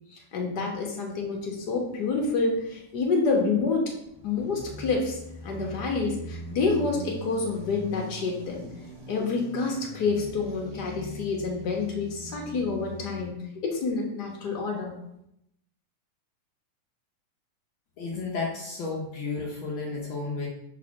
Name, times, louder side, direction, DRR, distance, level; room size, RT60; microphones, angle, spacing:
voice 1, 0.3-3.9 4.2-5.2 5.4-8.6 9.1-14.9, left 4 dB, 50° left, -1 dB, 1.2 m, -28 dB
sound 1, 1.2-2.9 3.5-13.3, equal, 25° right, 0.7 m, -42 dB
voice 2, 18.0-20.5, left 3 dB, 80° left, -2 dB, 1.1 m, -32 dB
4.6 x 4.1 x 5.8 m, 0.78 s
omnidirectional pair, 3.4 m